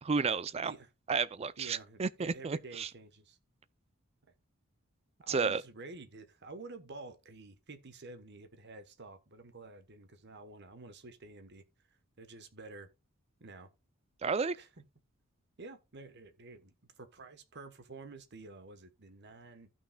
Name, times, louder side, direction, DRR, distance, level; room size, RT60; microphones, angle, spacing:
voice 1, 0.0-0.7 1.1-2.9 5.3-5.6 14.2-14.6, right 5 dB, 30° right, 0.4 m, -32 dB
voice 2, 1.6-3.4 5.2-11.6 12.2-12.9 13.4-13.7 14.6-14.8 15.6-19.7, right 3 dB, 50° right, 1.1 m, -50 dB
15.5 x 5.8 x 2.3 m
head